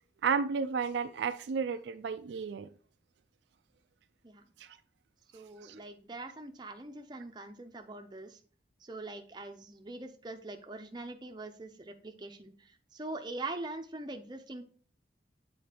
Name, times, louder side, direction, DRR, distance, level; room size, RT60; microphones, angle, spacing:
voice 1, 0.2-2.7 4.6-4.8 5.6-5.8, right 5 dB, 75° right, 0.4 m, -32 dB
voice 2, 5.3-8.4 8.8-14.6, right 2 dB, 25° right, 0.6 m, -43 dB
8.3 x 4.2 x 2.9 m
head